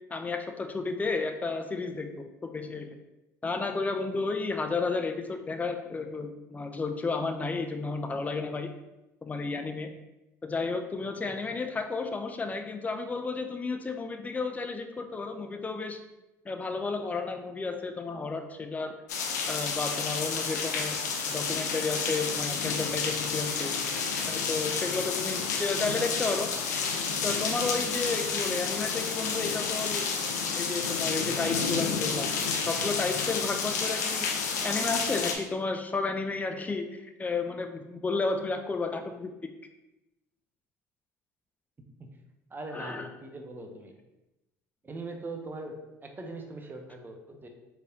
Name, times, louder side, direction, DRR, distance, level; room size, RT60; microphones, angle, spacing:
voice 1, 0.1-3.0 3.4-8.7 9.2-9.9 10.4-16.0 16.5-18.9 19.5-21.0 21.3-23.7 24.2-26.5 27.2-30.1 30.5-32.3 32.7-34.3 34.6-39.3 42.7-43.1, left 4 dB, 15° left, 6 dB, 0.5 m, -32 dB
voice 2, 11.2-11.6 42.0-42.2 42.5-44.0 44.8-47.5, right 2 dB, 20° right, 3 dB, 0.8 m, -41 dB
sound 1, 19.1-35.3, left 5 dB, 80° left, 0.6 m, -30 dB
4.6 x 3.2 x 2.7 m, 0.96 s
hypercardioid pair, 70°, 9 cm